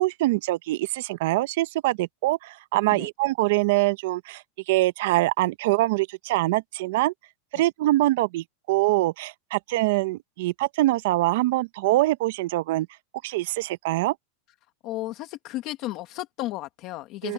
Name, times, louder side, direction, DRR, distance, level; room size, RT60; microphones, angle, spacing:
voice 1, 0.0-7.1 7.5-12.9 13.2-14.1 17.2-17.3, right 18 dB, 55° right, 0.6 m, -24 dB
voice 2, 14.8-17.3, left 16 dB, 35° left, 1.3 m, -34 dB
open air
supercardioid pair, 170°, 0 cm